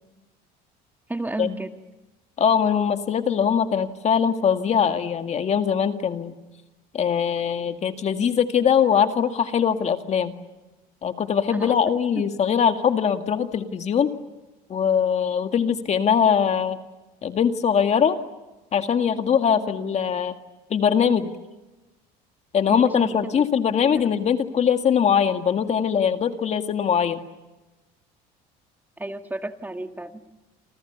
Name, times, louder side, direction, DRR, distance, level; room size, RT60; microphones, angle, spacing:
voice 1, 1.1-1.7 11.5-11.8 12.2-12.3 22.7-23.4 23.8-24.1 29.0-30.2, right 2 dB, 10° right, 7 dB, 1.7 m, -32 dB
voice 2, 2.4-6.3 6.9-10.4 11.0-14.1 14.7-16.8 17.2-18.2 18.7-20.3 20.7-21.3 22.5-27.2, left 7 dB, 40° left, 7 dB, 2.0 m, -21 dB
29.0 x 26.5 x 7.1 m, 1.1 s
supercardioid pair, 110°, 18 cm